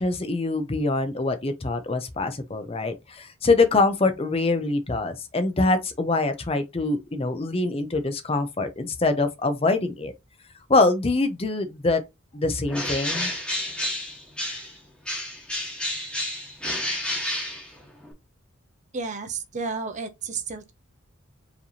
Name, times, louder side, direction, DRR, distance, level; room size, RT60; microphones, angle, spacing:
voice 1, 0.0-10.1 10.7-12.0 12.3-13.3, left 3 dB, 30° left, 0.6 m, -24 dB
Bird, 12.7-14.8 15.0-18.1, left 1 dB, 5° left, 1.3 m, -30 dB
voice 2, 18.9-20.7, right 4 dB, 35° right, 0.6 m, -32 dB
4.9 x 3.3 x 2.7 m
head